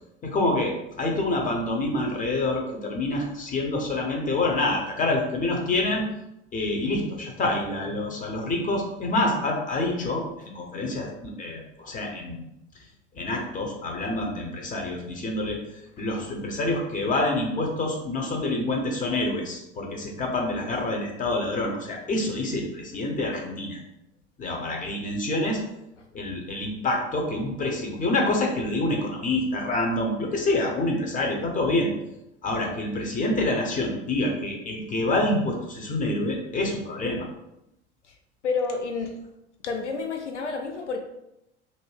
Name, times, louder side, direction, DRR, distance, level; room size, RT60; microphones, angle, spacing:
voice 1, 0.2-6.1 6.5-12.4 13.1-23.8 24.4-25.6 26.1-31.9 32.4-37.3, left 2 dB, 25° left, 1 dB, 0.7 m, -27 dB
voice 2, 38.4-39.1 39.6-41.0, left 4 dB, 85° left, 4 dB, 0.5 m, -29 dB
2.6 x 2.2 x 3.2 m, 0.86 s
figure-of-eight pair, 70°, 34 cm